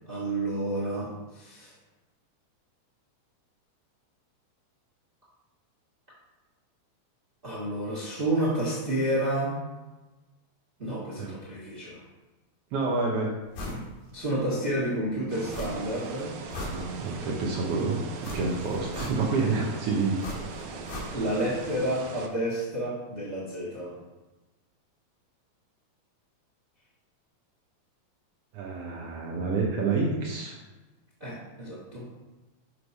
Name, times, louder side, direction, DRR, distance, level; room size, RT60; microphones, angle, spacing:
voice 1, 0.1-1.7 7.4-9.6 10.8-12.0 14.1-16.3 21.1-23.9 31.2-32.1, right 1 dB, 30° right, -6 dB, 1.0 m, -30 dB
voice 2, 12.7-13.3 16.6-20.3 28.5-30.6, right 4 dB, 70° right, -1 dB, 1.5 m, -28 dB
sound 1, 13.5-13.9 14.3-14.4 15.5-16.0 16.3-17.3 18.2-19.5 20.2-21.5 21.7-21.8, left 1 dB, 90° left, 2.8 m, -38 dB
sound 2, 15.3-22.3, right 4 dB, 85° right, 1.2 m, -40 dB
6.9 x 3.2 x 5.3 m, 1.1 s
omnidirectional pair, 3.3 m